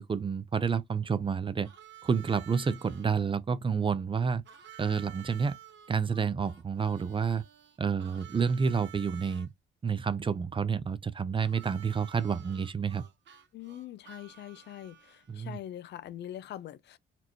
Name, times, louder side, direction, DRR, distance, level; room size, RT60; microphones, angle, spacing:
voice 1, 0.0-1.7 2.0-4.4 4.8-5.6 5.9-7.4 7.8-9.5 9.8-13.0 15.3-15.6, right 6 dB, 25° right, 0.5 m, -29 dB
Harmonica, 1.6-3.1 4.5-9.5 11.4-15.3, right 10 dB, 65° right, 1.0 m, -52 dB
voice 2, 13.5-17.0, left 12 dB, 60° left, 0.4 m, -43 dB
4.2 x 3.0 x 2.8 m
cardioid pair, 90°, 20 cm